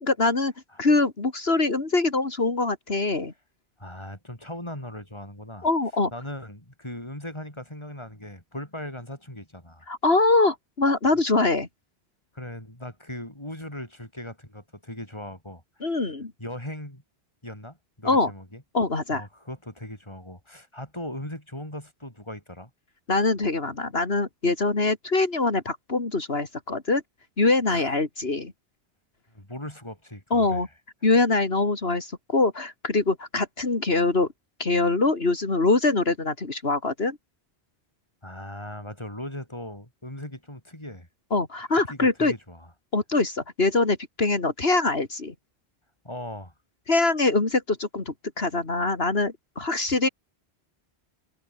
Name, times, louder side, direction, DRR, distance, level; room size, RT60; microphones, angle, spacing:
voice 1, 0.0-0.5 0.8-3.3 5.6-6.1 9.9-11.7 15.8-16.3 18.0-18.3 18.7-19.2 23.1-27.0 27.4-28.5 30.3-30.7 31.0-34.3 34.6-37.2 41.3-42.3 42.9-45.3 46.9-50.1, left 3 dB, 70° left, 3.0 m, -23 dB
voice 2, 3.8-5.7 6.1-9.9 12.3-16.0 16.4-17.0 17.4-18.6 19.1-22.7 27.7-27.9 29.3-30.7 38.2-41.1 41.7-42.7 46.0-46.5, left 1 dB, 25° left, 6.1 m, -39 dB
omnidirectional pair, 1.1 m